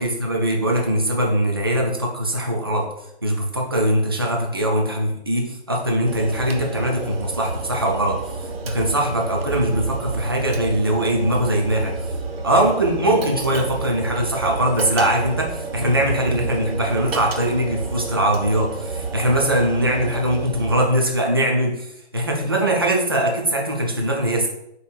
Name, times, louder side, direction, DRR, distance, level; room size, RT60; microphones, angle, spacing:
voice 1, 0.0-2.9 3.2-12.1 12.4-24.5, right 1 dB, 25° right, 0 dB, 0.4 m, -21 dB
sound 1, 6.0-20.9, right 4 dB, 60° right, 0.8 m, -30 dB
5.2 x 4.0 x 2.4 m, 0.79 s
hypercardioid pair, 165°, 33 cm